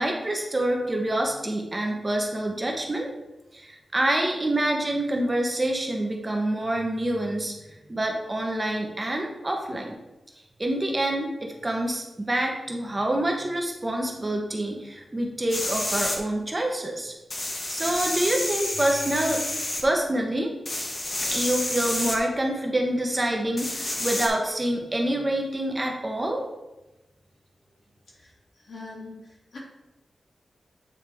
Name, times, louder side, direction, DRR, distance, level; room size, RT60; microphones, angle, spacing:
voice 1, 0.0-3.1 3.5-7.5 7.9-10.0 10.6-17.1 17.7-20.5 21.3-26.4, right 1 dB, 20° right, 1 dB, 0.9 m, -27 dB
sound 1, 15.5-16.2 17.3-19.8 20.7-22.2 23.6-24.3, left 1 dB, 35° left, 1.1 m, -29 dB
voice 2, 28.7-29.1 29.5-29.6, left 3 dB, 65° left, -5 dB, 2.4 m, -40 dB
8.4 x 4.6 x 3.5 m, 1.0 s
wide cardioid pair, 150°, 0 cm